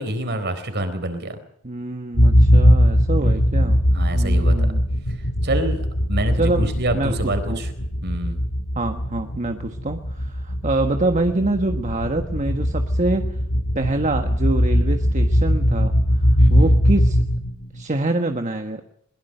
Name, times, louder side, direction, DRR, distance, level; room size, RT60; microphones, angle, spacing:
voice 1, 0.0-1.4 3.2-4.7 5.4-7.7 8.0-8.4 16.4-16.8, right 1 dB, 50° right, 9 dB, 4.2 m, -27 dB
voice 2, 1.6-3.8 4.1-4.8 6.4-7.2 7.5-7.6 8.7-13.4 13.7-17.3 17.7-18.8, right 2 dB, 35° right, 6 dB, 1.4 m, -25 dB
sound 1, 2.1-17.8, equal, 70° left, 5.1 m, -19 dB
22.0 x 21.5 x 6.8 m, 0.71 s
head